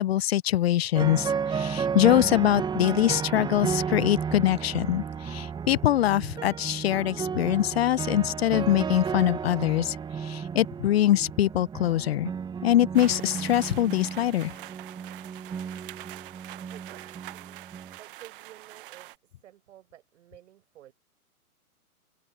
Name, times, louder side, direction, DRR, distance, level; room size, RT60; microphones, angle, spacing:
voice 1, 0.0-12.3 12.6-14.5, left 13 dB, 45° left, 0.8 m, -24 dB
sound 1, 0.9-18.0, right 6 dB, 10° right, 1.6 m, -33 dB
sound 2, 12.9-19.2, right 17 dB, 35° right, 1.2 m, -44 dB
voice 2, 16.7-20.9, right 12 dB, 50° right, 6.5 m, -52 dB
figure-of-eight pair, 125°, 44 cm